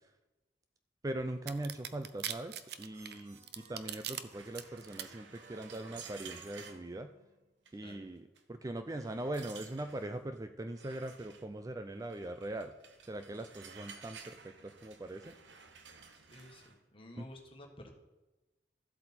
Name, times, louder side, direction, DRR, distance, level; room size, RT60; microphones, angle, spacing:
voice 1, 1.0-7.1 7.7-12.7 13.1-15.3 17.2-17.3, right 1 dB, 20° right, 8 dB, 0.4 m, -41 dB
sound 1, 1.5-4.2 4.5-5.0, right 10 dB, 60° right, 0.6 m, -40 dB
sound 2, 2.4-7.7, right 3 dB, 40° right, 1.2 m, -60 dB
sound 3, 4.3-6.8 7.7-7.9 8.4-8.5 8.9-10.1 10.7-11.5 12.1-16.8, right 6 dB, 85° right, 1.0 m, -53 dB
voice 2, 16.1-17.9, left 1 dB, 30° left, 2 dB, 1.5 m, -53 dB
13.0 x 7.9 x 4.4 m, 1.1 s
head